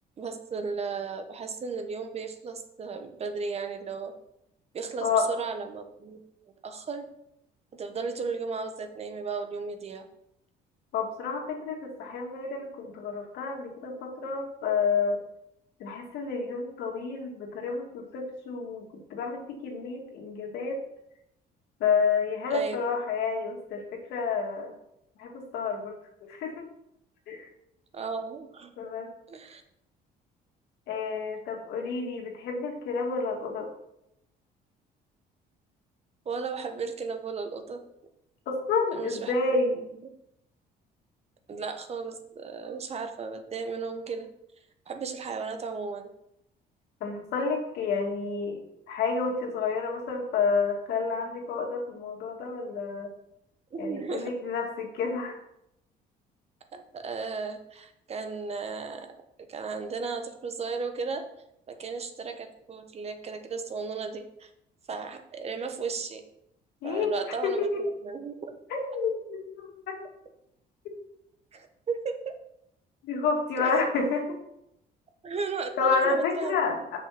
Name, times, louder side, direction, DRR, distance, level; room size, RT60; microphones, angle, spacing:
voice 1, 0.2-4.1 4.7-6.2 6.6-7.1 7.7-10.1 22.5-22.8 27.9-28.7 29.3-29.6 36.2-37.8 38.9-39.4 41.5-44.3 44.9-46.1 53.7-54.3 56.7-59.1 59.5-61.2 61.7-64.5 64.9-66.2 66.8-68.4 71.5-72.3 73.6-73.8 75.2-76.6, right 5 dB, 40° right, 6 dB, 1.1 m, -35 dB
voice 2, 10.9-15.2 15.8-20.8 21.8-24.7 25.2-25.9 26.2-26.7 27.3-27.5 28.8-29.1 30.9-33.7 38.5-39.7 47.0-48.6 48.9-53.1 53.8-55.4 66.8-67.1 67.4-67.8 68.7-70.0 73.0-74.2 75.8-77.0, left 4 dB, 80° left, 1 dB, 2.2 m, -29 dB
6.5 x 6.1 x 5.9 m, 0.80 s
cardioid pair, 110°, 17 cm